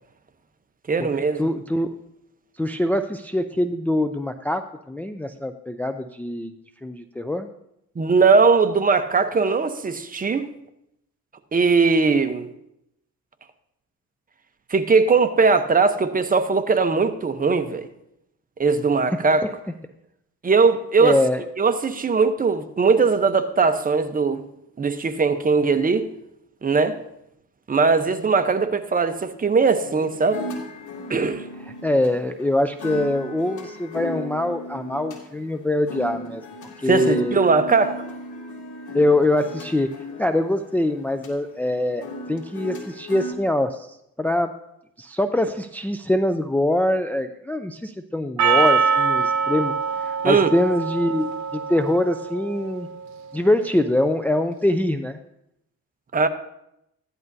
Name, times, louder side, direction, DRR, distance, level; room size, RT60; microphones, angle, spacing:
voice 1, 0.9-1.4 8.0-10.5 11.5-12.5 14.7-17.9 18.6-19.5 20.4-21.2 21.6-24.4 24.8-26.1 26.6-27.0 27.7-30.4 31.1-31.4 36.9-38.0 50.2-50.5 56.1-56.3, right 4 dB, 30° right, 9 dB, 0.9 m, -19 dB
voice 2, 1.4-1.9 2.6-6.5 6.8-7.5 19.4-19.5 21.0-21.4 31.8-36.4 36.8-37.4 38.9-39.9 40.2-44.6 45.0-52.9 53.3-55.2, left 1 dB, 5° left, 7 dB, 0.4 m, -23 dB
sound 1, 29.8-43.3, left 1 dB, 80° left, 2.4 m, -36 dB
Percussion, 48.4-52.7, right 5 dB, 70° right, 1.0 m, -23 dB
15.0 x 11.0 x 2.7 m, 0.81 s
cardioid pair, 90°, 30 cm